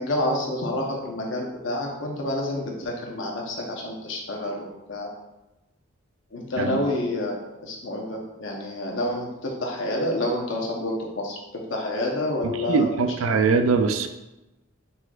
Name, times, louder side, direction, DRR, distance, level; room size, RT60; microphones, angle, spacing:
voice 1, 0.0-5.1 6.3-7.4 7.6-13.8, left 1 dB, 70° left, -1 dB, 1.0 m, -29 dB
voice 2, 12.4-14.1, right 4 dB, 90° right, 7 dB, 0.4 m, -22 dB
4.5 x 4.2 x 2.4 m, 0.99 s
head